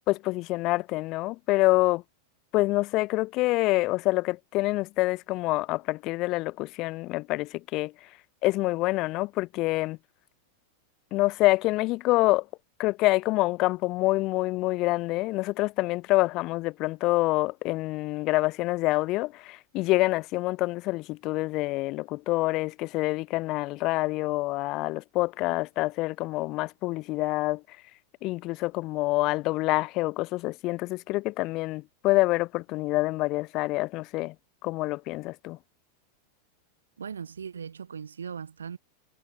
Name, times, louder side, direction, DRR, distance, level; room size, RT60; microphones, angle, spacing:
voice 1, 0.1-2.0 2.5-8.1 8.4-10.0 11.1-12.5 12.8-27.8 28.2-34.3 34.6-35.6, left 20 dB, 40° left, 0.4 m, -26 dB
voice 2, 37.0-38.8, right 6 dB, 70° right, 1.3 m, -38 dB
figure-of-eight pair, 90°, 0 cm